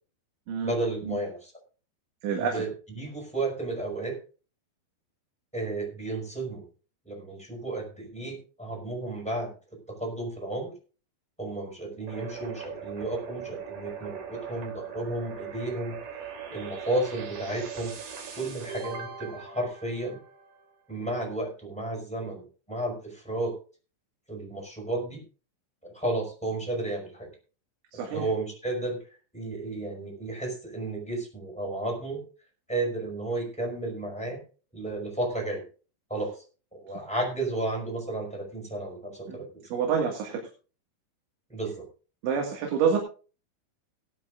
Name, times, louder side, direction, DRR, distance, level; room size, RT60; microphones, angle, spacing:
voice 1, 0.6-1.5 2.4-2.7 2.9-4.2 5.5-6.6 7.0-9.5 9.9-10.7 11.4-17.9 18.3-20.2 20.9-23.5 24.3-25.2 25.8-27.3 28.1-32.2 32.7-34.4 34.7-35.6 36.1-36.4 36.7-39.8 41.5-41.8, right 2 dB, ahead, 0 dB, 4.4 m, -33 dB
voice 2, 2.2-2.6 27.9-28.2 39.3-39.4 39.7-40.4 42.2-43.0, right 6 dB, 80° right, 1 dB, 4.2 m, -27 dB
sound 1, 12.1-20.7, right 7 dB, 60° right, 4.3 m, -40 dB
17.5 x 12.5 x 2.5 m, 0.36 s
omnidirectional pair, 5.4 m